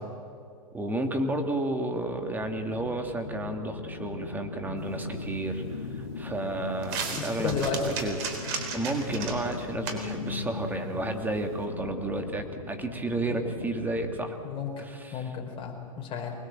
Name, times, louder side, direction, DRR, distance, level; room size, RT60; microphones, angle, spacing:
voice 1, 0.7-8.2 8.7-14.4 14.8-15.4, right 2 dB, 10° right, 5 dB, 2.4 m, -32 dB
sound 1, 2.4-14.3, left 5 dB, 90° left, 1.6 m, -39 dB
sound 2, 4.8-11.7, right 5 dB, 50° right, 4.0 m, -38 dB
voice 2, 7.2-7.9 14.4-14.8 15.1-16.3, left 5 dB, 30° left, 2 dB, 5.2 m, -32 dB
24.5 x 20.5 x 7.7 m, 2.4 s
hypercardioid pair, 115°, 18 cm